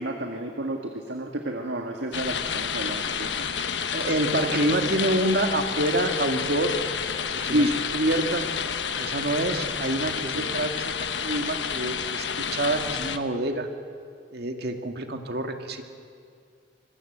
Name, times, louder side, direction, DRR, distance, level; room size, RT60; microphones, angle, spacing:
voice 1, 0.0-3.6 7.4-7.8 10.3-10.6, right 1 dB, 85° right, 4 dB, 1.8 m, -30 dB
sound 1, 2.1-13.2, left 7 dB, 80° left, 1.2 m, -30 dB
voice 2, 3.5-6.8 7.3-8.5 9.0-13.7 14.3-15.8, right 1 dB, 65° right, 5 dB, 2.1 m, -27 dB
25.0 x 21.0 x 8.0 m, 2.3 s
head